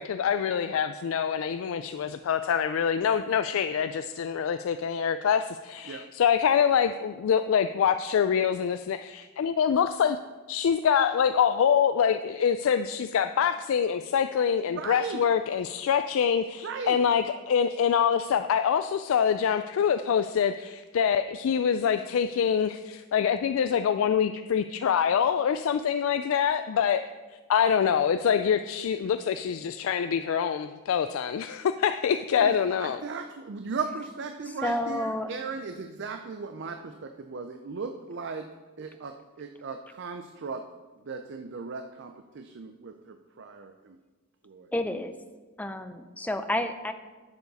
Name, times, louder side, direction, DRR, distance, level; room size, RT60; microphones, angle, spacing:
voice 1, 0.0-10.2 10.5-27.0 27.5-33.0, left 7 dB, 70° left, 10 dB, 0.3 m, -25 dB
voice 2, 14.7-15.2 16.6-17.0 32.4-32.5 32.8-38.5 38.8-40.6 41.0-44.0 44.4-44.7, right 4 dB, 55° right, 6 dB, 0.5 m, -37 dB
voice 3, 34.5-35.3 44.7-45.1 45.6-46.9, left 1 dB, 5° left, 9 dB, 0.5 m, -30 dB
10.5 x 7.0 x 4.1 m, 1.3 s
head